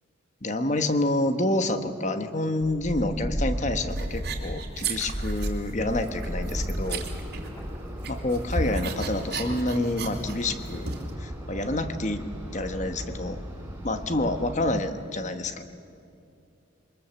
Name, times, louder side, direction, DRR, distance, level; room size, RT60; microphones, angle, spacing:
voice 1, 0.4-7.0 8.1-10.9 11.2-12.2 12.5-13.4 13.8-15.6, left 1 dB, 35° left, 9 dB, 1.2 m, -28 dB
sound 1, 2.6-8.1, equal, 20° left, 4.7 m, -33 dB
sound 2, 3.9-5.7 6.0-7.8 8.0-11.1, right 3 dB, 50° right, 2.7 m, -34 dB
sound 3, 5.8-14.8, equal, 10° right, 3.8 m, -39 dB
23.5 x 21.0 x 7.2 m, 2.6 s
head